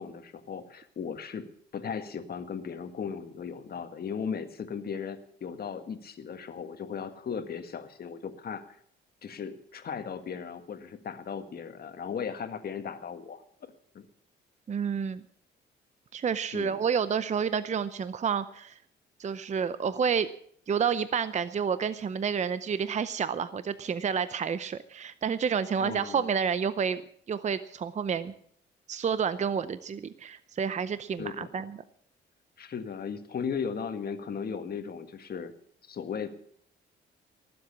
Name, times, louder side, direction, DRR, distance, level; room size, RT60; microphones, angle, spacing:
voice 1, 0.0-1.5 1.7-8.8 9.2-13.4 13.9-14.0 16.5-16.8 25.8-26.3 31.2-31.5 32.6-35.5 35.8-36.3, left 6 dB, 50° left, 8 dB, 1.7 m, -37 dB
voice 2, 14.7-15.2 16.1-18.8 19.2-20.3 20.7-27.0 27.3-28.3 28.9-31.8, right 7 dB, 35° right, 14 dB, 0.6 m, -29 dB
19.0 x 7.8 x 7.3 m, 0.63 s
cardioid pair, 90°, 20 cm